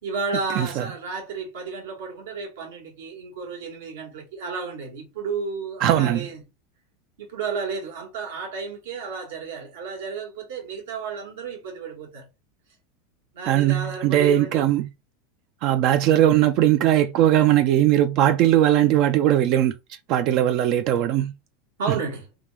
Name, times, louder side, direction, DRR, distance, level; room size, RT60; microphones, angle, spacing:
voice 1, 0.0-6.4 7.2-12.3 13.3-14.6 15.6-15.7 21.8-22.3, right 4 dB, 85° right, 1.6 m, -32 dB
voice 2, 0.6-0.9 5.8-6.3 13.5-14.9 15.6-19.8 20.1-21.3, right 12 dB, 50° right, 0.3 m, -19 dB
3.4 x 2.5 x 3.2 m
supercardioid pair, 125°, 0 cm